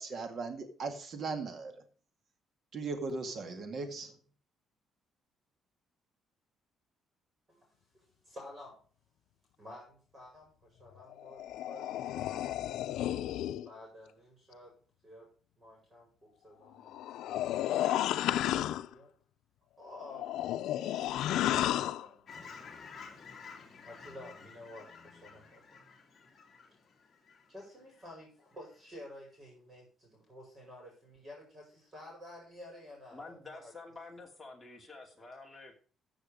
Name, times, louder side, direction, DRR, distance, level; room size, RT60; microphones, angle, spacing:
voice 1, 0.0-1.8 2.7-4.2, right 4 dB, 45° right, 2.0 m, -38 dB
voice 2, 7.5-8.8 9.6-12.5 13.6-14.7 15.0-15.3 15.6-17.6 17.9-19.1 19.8-20.3 20.8-22.7 23.8-25.8 27.5-33.7, left 1 dB, 25° right, 5.5 m, -52 dB
sound 1, 11.1-13.7 16.8-18.9 19.9-22.1, left 13 dB, 85° left, 0.5 m, -32 dB
Fowl / Chirp tweet, 22.3-28.1 28.5-28.7, left 5 dB, 30° left, 2.4 m, -52 dB
voice 3, 33.1-35.8, left 3 dB, 10° left, 2.8 m, -49 dB
14.0 x 6.5 x 5.1 m
cardioid pair, 155°, 0 cm